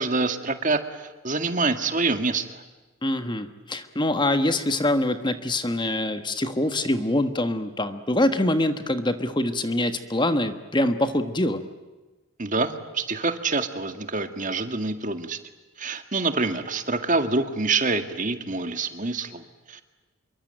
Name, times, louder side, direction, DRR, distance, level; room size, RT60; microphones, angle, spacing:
voice 1, 0.0-2.6 12.4-15.4 15.8-19.8, right 3 dB, 40° right, 8 dB, 2.0 m, -26 dB
voice 2, 3.0-11.6, left 1 dB, 20° left, 9 dB, 1.4 m, -24 dB
27.0 x 23.5 x 8.9 m, 1.2 s
head